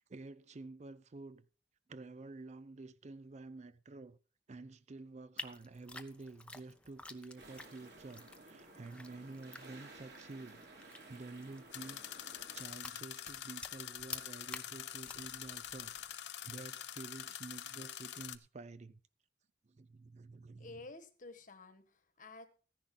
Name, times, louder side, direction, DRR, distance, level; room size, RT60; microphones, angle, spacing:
voice 1, 0.0-1.5 1.9-4.2 4.5-15.9 16.4-19.0 19.6-20.8, right 3 dB, 40° right, 0.5 m, -50 dB
sound 1, 5.4-16.2, left 2 dB, 5° left, 0.7 m, -52 dB
sound 2, 7.4-12.6, right 2 dB, 70° right, 3.6 m, -55 dB
sound 3, 11.7-18.4, left 11 dB, 70° left, 0.7 m, -45 dB
voice 2, 20.6-22.5, left 3 dB, 50° left, 1.4 m, -52 dB
14.5 x 10.5 x 3.7 m
head